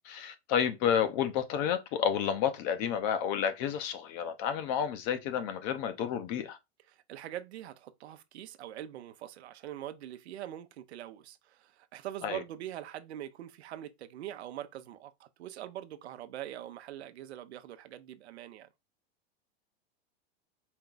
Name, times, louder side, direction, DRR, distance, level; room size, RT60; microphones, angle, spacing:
voice 1, 0.0-6.6 12.2-12.4, left 8 dB, 40° left, 0.7 m, -30 dB
voice 2, 7.1-18.7, right 12 dB, 85° right, 0.7 m, -43 dB
4.4 x 2.3 x 3.7 m
supercardioid pair, 140°, 32 cm